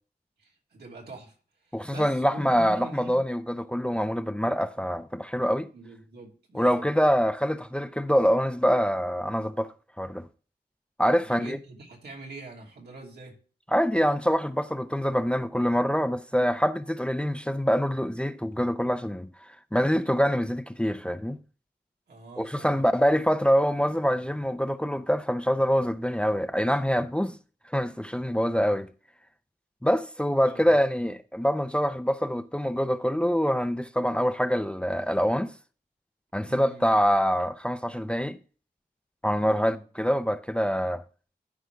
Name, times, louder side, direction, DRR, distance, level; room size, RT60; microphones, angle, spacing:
voice 1, 0.4-3.2 5.7-6.9 11.0-13.4 22.1-23.1 30.4-30.7 36.5-36.9 39.4-39.8, right 2 dB, 85° right, 3.0 m, -45 dB
voice 2, 1.7-5.7 6.5-9.7 10.0-10.3 11.0-11.6 13.7-19.3 19.7-21.4 22.4-27.4 27.7-28.9 29.8-35.5 36.3-38.4 39.2-41.0, equal, 5° left, 0.6 m, -25 dB
13.0 x 5.1 x 3.4 m
cardioid pair, 70°, 16 cm